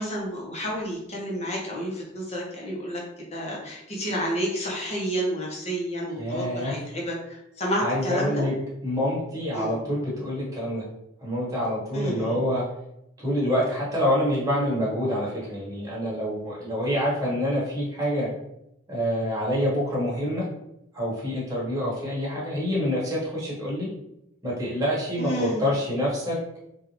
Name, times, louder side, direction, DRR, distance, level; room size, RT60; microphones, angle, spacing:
voice 1, 0.0-3.0 3.3-8.4 9.5-9.7 11.9-12.3 25.2-25.6, equal, 35° left, -3 dB, 1.1 m, -30 dB
voice 2, 6.2-6.8 7.8-8.5 8.8-10.8 11.2-12.6 13.2-18.3 18.9-20.4 20.9-23.9 24.4-26.4, equal, 15° right, -6 dB, 1.4 m, -26 dB
3.6 x 2.7 x 3.2 m, 0.83 s
head